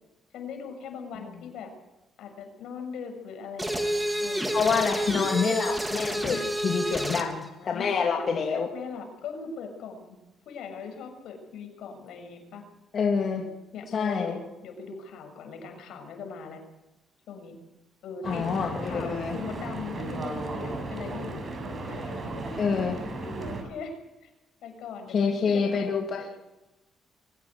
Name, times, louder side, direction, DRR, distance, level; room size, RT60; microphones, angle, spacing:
voice 1, 0.3-1.7 2.2-4.7 6.1-6.5 6.8-10.2 10.4-12.6 13.1-16.6 17.3-17.6 18.0-18.5 18.8-21.4 21.9-22.2 23.2-24.3 24.6-26.4, left 5 dB, 80° left, 5 dB, 6.8 m, -40 dB
sound 1, 3.6-7.3, right 1 dB, 5° right, 3.7 m, -29 dB
voice 2, 4.5-6.4 6.6-8.7 12.9-13.4 13.9-14.4 18.2-19.4 22.6-23.0 25.1-26.3, left 5 dB, 55° left, 1 dB, 2.9 m, -27 dB
Stream / Boat Water vehicle, 18.2-23.6, right 2 dB, 40° right, 7.6 m, -35 dB
24.5 x 16.5 x 8.0 m, 1.0 s
cardioid pair, 90°, 0 cm